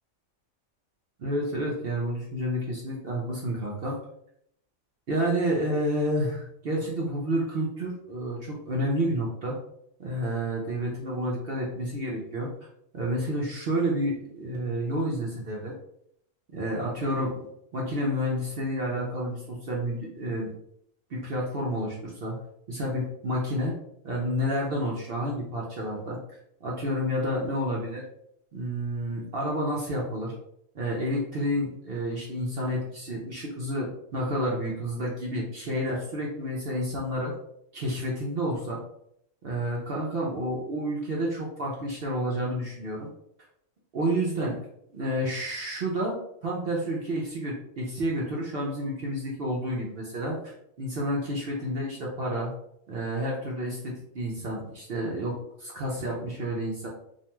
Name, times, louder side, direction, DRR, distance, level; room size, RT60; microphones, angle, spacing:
voice 1, 1.2-4.0 5.1-9.6 10.0-12.5 12.9-15.7 16.5-17.3 17.7-20.5 21.1-22.4 22.7-23.7 24.0-26.2 26.6-28.0 28.5-30.3 30.7-37.3 37.7-38.8 39.4-43.1 43.9-44.6 44.9-46.2 46.4-52.5 52.9-56.9, equal, 60° right, -3 dB, 0.6 m, -30 dB
2.5 x 2.2 x 2.9 m, 0.73 s
omnidirectional pair, 1.4 m